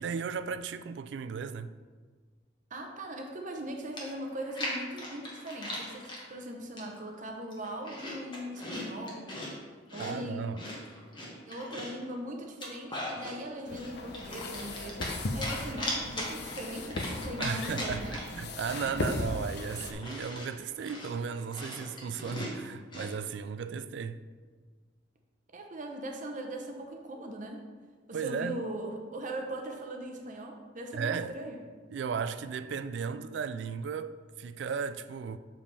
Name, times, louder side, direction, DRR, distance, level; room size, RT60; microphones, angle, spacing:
voice 1, 0.0-1.7 10.0-10.6 17.4-24.2 28.1-28.6 30.9-31.4 31.9-35.4, right 6 dB, 65° right, 0.3 m, -35 dB
voice 2, 2.7-9.3 9.9-10.4 11.5-18.2 25.5-27.7 28.1-31.6, right 1 dB, 45° right, 0.8 m, -40 dB
Chewing mastication, 3.6-3.7 4.0-6.2 6.8-7.1 7.5-9.5 9.9-12.0 12.4-13.4 13.7-15.2 15.4-18.4 18.7-18.8 19.1-23.1, left 1 dB, 25° left, 1.3 m, -39 dB
sound 1, 13.7-19.9, left 2 dB, 60° left, 0.6 m, -37 dB
7.1 x 5.1 x 3.3 m
head